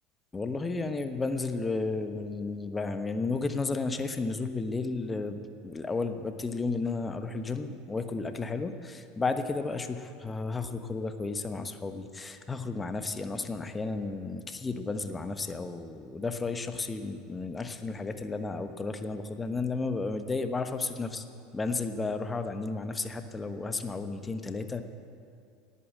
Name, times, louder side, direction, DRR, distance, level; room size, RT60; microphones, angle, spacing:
voice 1, 0.3-21.2 21.5-24.8, left 3 dB, 20° left, 8 dB, 1.2 m, -33 dB
18.5 x 8.6 x 8.6 m, 2.5 s
figure-of-eight pair, 70°, 0 cm